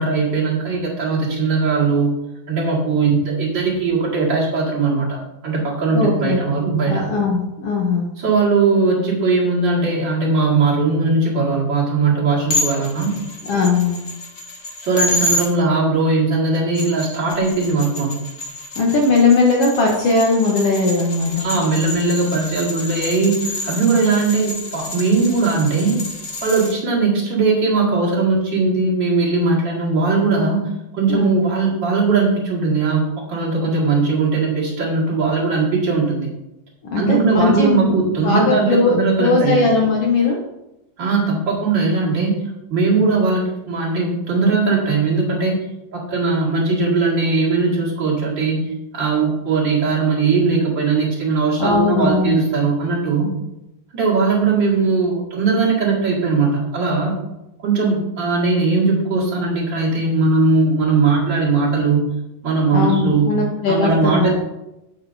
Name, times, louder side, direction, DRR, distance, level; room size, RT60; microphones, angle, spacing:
voice 1, 0.0-2.1 2.5-7.0 8.2-13.1 14.8-18.3 21.4-26.0 26.4-30.6 30.9-36.3 37.0-39.6 41.0-42.4 42.7-45.6 45.9-48.6 48.9-53.3 53.9-57.1 57.6-62.1 62.4-63.3 63.7-64.3, right 4 dB, 40° right, -4 dB, 2.2 m, -19 dB
voice 2, 5.9-6.4 6.9-8.1 13.4-14.0 18.8-21.5 31.1-31.3 36.9-40.4 51.6-52.4 62.7-64.3, left 3 dB, 75° left, 0 dB, 1.4 m, -18 dB
sound 1, 12.5-15.5 16.5-26.7, left 1 dB, 50° left, 1.2 m, -28 dB
8.9 x 8.6 x 2.7 m, 0.90 s
omnidirectional pair, 4.0 m